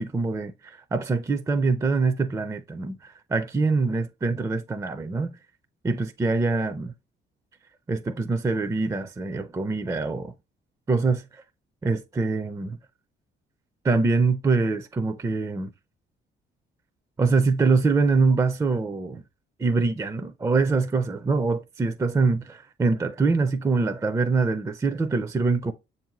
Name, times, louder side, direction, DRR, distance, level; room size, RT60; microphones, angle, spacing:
voice 1, 0.0-5.3 5.8-6.9 7.9-10.3 10.9-11.4 11.8-12.8 13.8-15.7 17.2-19.2 19.6-25.7, right 4 dB, 15° right, 0.4 m, -24 dB
6.9 x 2.7 x 2.9 m
cardioid pair, 90°, 20 cm